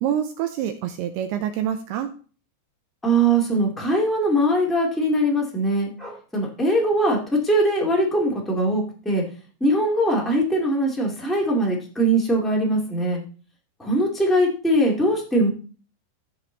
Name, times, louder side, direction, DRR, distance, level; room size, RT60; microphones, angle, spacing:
voice 1, 0.0-2.1, right 10 dB, 75° right, 7 dB, 2.4 m, -26 dB
voice 2, 3.0-9.2 9.6-13.2 13.8-15.5, right 1 dB, ahead, -2 dB, 0.4 m, -21 dB
15.5 x 5.2 x 4.0 m, 0.38 s
omnidirectional pair, 5.2 m